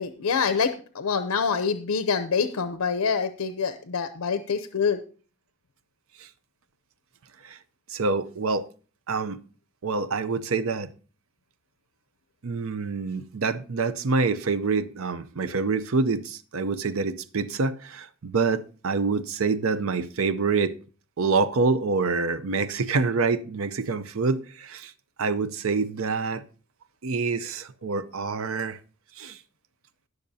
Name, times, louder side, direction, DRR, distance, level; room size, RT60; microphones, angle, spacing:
voice 1, 0.0-5.0, left 5 dB, 85° left, 0.6 m, -26 dB
voice 2, 7.9-8.7 9.1-9.4 9.8-10.9 12.4-20.7 21.2-24.9 25.2-26.4 27.0-28.8 29.2-29.4, right 4 dB, 70° right, 0.6 m, -26 dB
19.0 x 6.5 x 2.7 m
head